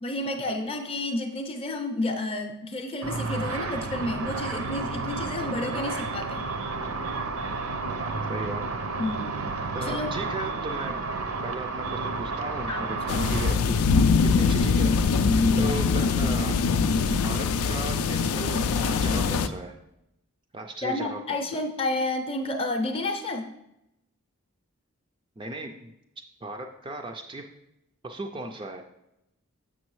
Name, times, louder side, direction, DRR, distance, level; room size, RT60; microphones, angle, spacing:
voice 1, 0.0-6.5 9.0-10.2 12.7-13.1 15.2-15.7 20.8-23.5, left 2 dB, 25° left, 4 dB, 0.6 m, -30 dB
Car / Traffic noise roadway noise / Engine, 3.0-13.5, right 3 dB, 75° right, 0.7 m, -31 dB
voice 2, 7.9-8.6 9.7-11.0 11.4-13.8 14.2-15.0 15.6-16.6 17.1-19.7 20.5-21.6 25.4-25.9 26.4-27.4 28.0-28.8, right 2 dB, 20° right, 3 dB, 0.3 m, -36 dB
sound 1, 13.1-19.5, left 5 dB, 80° left, 0.4 m, -23 dB
7.2 x 6.1 x 3.1 m, 0.86 s
head